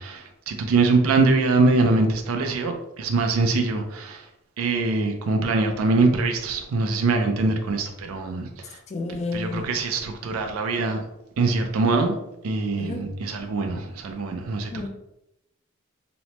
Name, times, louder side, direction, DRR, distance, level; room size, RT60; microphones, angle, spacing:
voice 1, 0.0-4.3 4.6-8.8 9.1-11.0 11.4-12.2 12.4-14.9, right 3 dB, 80° right, 5 dB, 0.4 m, -23 dB
voice 2, 8.9-9.7 12.8-13.1 14.7-14.9, left 3 dB, 35° left, 4 dB, 0.4 m, -30 dB
3.0 x 2.0 x 2.8 m, 0.85 s
head